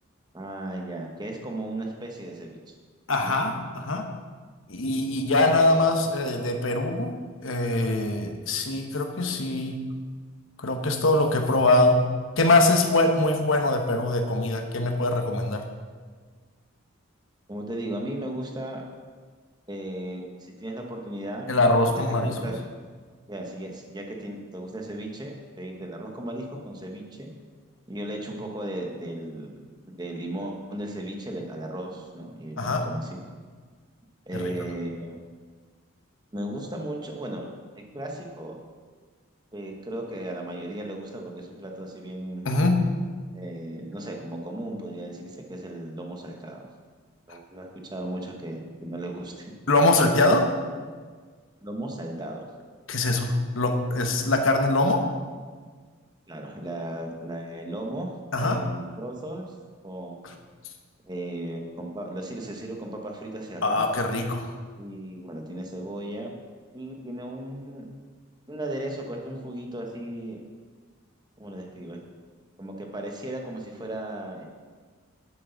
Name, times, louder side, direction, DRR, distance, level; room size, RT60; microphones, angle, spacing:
voice 1, 0.3-2.7 3.2-3.4 17.5-18.8 19.7-21.5 21.9-22.6 23.3-27.3 27.9-29.6 30.0-33.2 34.3-35.2 36.3-37.5 37.8-38.6 39.5-42.5 43.3-46.6 47.3-49.6 51.6-52.4 56.3-58.1 58.4-59.5 59.8-60.3 61.1-63.8 64.8-66.3 66.7-67.9 68.5-70.4 71.4-72.0 72.6-74.4, right 1 dB, 20° right, 1 dB, 1.1 m, -36 dB
voice 2, 3.1-4.1 4.7-9.8 10.6-12.0 12.4-15.6 21.5-22.5 32.6-32.9 34.3-34.5 42.4-42.8 47.3-47.4 49.7-50.5 52.9-55.1 58.3-58.6 63.6-64.5, left 2 dB, 70° left, 5 dB, 1.1 m, -23 dB
11.0 x 8.6 x 4.0 m, 1.5 s
head